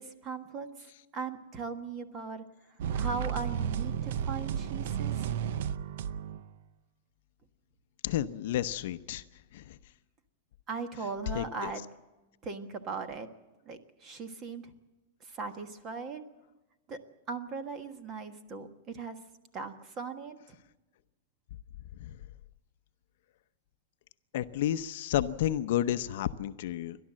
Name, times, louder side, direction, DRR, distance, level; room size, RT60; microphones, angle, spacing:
voice 1, 0.0-2.4 2.9-5.3 10.7-11.9 12.4-13.3 13.6-14.7 15.2-16.2 16.9-17.0 17.3-19.2 19.5-20.6, right 4 dB, 20° right, 9 dB, 1.4 m, -39 dB
sound 1, 2.8-6.6, right 8 dB, 55° right, 0.6 m, -33 dB
voice 2, 8.0-9.2 9.5-9.8 11.3-11.7 22.0-22.2 24.3-27.0, left 12 dB, 55° left, 12 dB, 0.7 m, -31 dB
29.5 x 12.5 x 7.6 m, 1.1 s
supercardioid pair, 170°, 0 cm